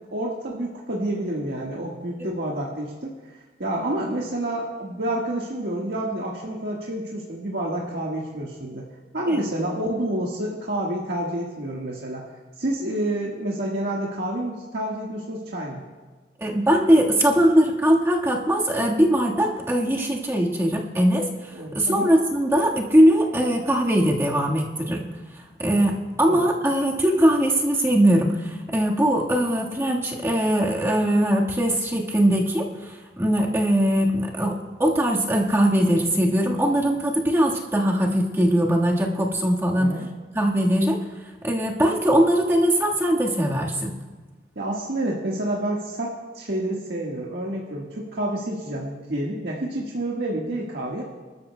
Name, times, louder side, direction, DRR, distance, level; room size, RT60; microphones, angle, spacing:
voice 1, 0.1-3.1 3.6-8.8 9.1-12.2 12.6-15.8 21.5-22.1 26.2-26.5 39.7-40.1 44.5-51.0, right 1 dB, 70° right, -3 dB, 1.5 m, -28 dB
voice 2, 16.4-25.1 25.6-39.9 40.3-41.0 41.4-43.9, equal, 15° right, -2 dB, 1.5 m, -21 dB
26.0 x 13.0 x 2.2 m, 1.3 s
head